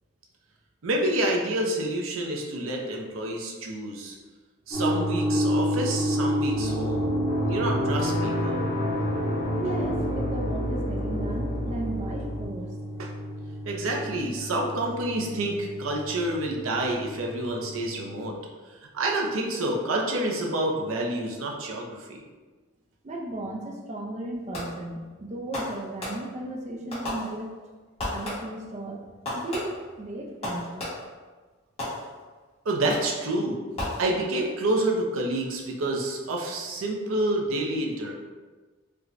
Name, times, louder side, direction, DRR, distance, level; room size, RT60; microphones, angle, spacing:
voice 1, 0.8-4.2 4.7-8.6 13.0-13.1 13.6-18.4 18.7-22.2 32.6-33.6 34.0-38.1, right 1 dB, 80° right, 0 dB, 0.6 m, -28 dB
sound 1, 4.7-18.4, equal, 10° left, 0.9 m, -31 dB
sound 2, 6.5-12.5, equal, 50° left, 0.5 m, -30 dB
voice 2, 9.5-12.8 23.0-27.6 28.1-29.0 29.3-30.8, right 1 dB, 35° right, 1 dB, 0.4 m, -35 dB
Fireworks, 24.5-25.0 25.5-26.5 26.9-27.7 28.0-28.7 29.3-31.2 31.8-32.4 32.9-33.3 33.8-34.5, left 1 dB, 30° left, 1.2 m, -35 dB
4.5 x 2.2 x 2.5 m, 1.3 s
head